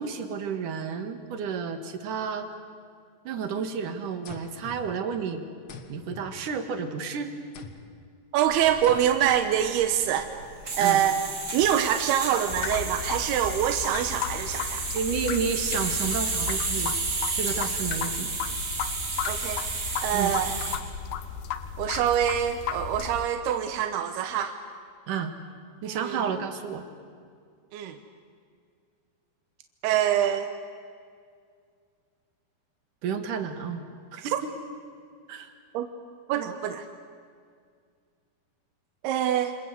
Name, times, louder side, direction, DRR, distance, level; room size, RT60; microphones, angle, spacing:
voice 1, 0.0-2.5 3.2-5.5 5.9-7.4 10.8-11.0 14.9-16.9 17.3-18.3 20.1-20.3 25.1-25.3 25.8-26.8 33.0-33.8 34.1-34.4 35.3-35.5, right 6 dB, 60° right, 7 dB, 3.1 m, -31 dB
sound 1, 4.2-5.3 5.7-7.0 7.5-8.1 8.8-9.5, left 5 dB, 55° left, 1.4 m, -46 dB
voice 2, 8.3-10.3 10.8-11.2 11.5-14.8 19.3-19.6 20.0-20.6 21.8-24.5 25.9-26.2 27.7-28.0 29.8-30.5 34.2-34.3 35.7-35.9 36.3-36.9 39.0-39.5, right 10 dB, 90° right, 7 dB, 3.0 m, -25 dB
sound 2, 8.5-20.8, right 3 dB, 30° right, 3.2 m, -32 dB
sound 3, 12.5-23.3, left 8 dB, 75° left, 2.8 m, -35 dB
28.5 x 26.0 x 8.1 m, 2.1 s
omnidirectional pair, 4.5 m